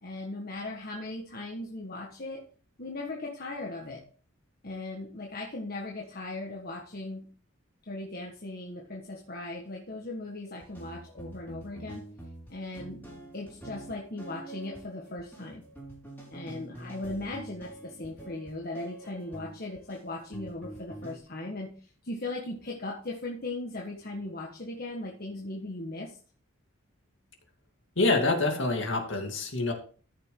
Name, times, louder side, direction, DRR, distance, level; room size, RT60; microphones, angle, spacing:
voice 1, 0.0-2.4 2.8-4.1 4.6-7.3 7.8-12.1 12.5-13.0 13.3-15.6 16.3-26.2, left 2 dB, 45° left, -1 dB, 1.5 m, -38 dB
sound 1, 10.6-21.2, right 1 dB, 10° left, 4.2 m, -46 dB
voice 2, 28.0-29.7, left 2 dB, 60° left, 3 dB, 2.5 m, -26 dB
14.0 x 6.7 x 3.8 m, 0.41 s
head